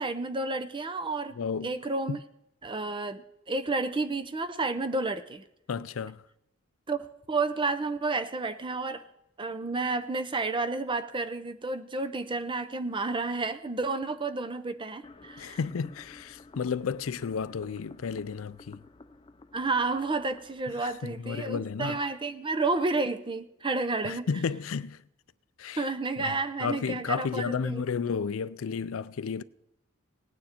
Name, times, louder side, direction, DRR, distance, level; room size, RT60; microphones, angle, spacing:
voice 1, 0.0-1.4 1.6-2.2 2.6-5.4 6.9-9.0 9.4-15.6 19.5-24.3 25.8-27.8, right 3 dB, 25° right, 0.7 m, -31 dB
voice 2, 1.4-1.7 2.1-2.2 5.7-6.2 15.4-18.8 20.8-22.0 24.0-25.0 25.6-25.8 26.2-29.4, left 6 dB, 70° left, 0.4 m, -32 dB
sound 1, 15.0-22.1, left 2 dB, 25° left, 0.6 m, -52 dB
18.0 x 9.3 x 4.4 m
head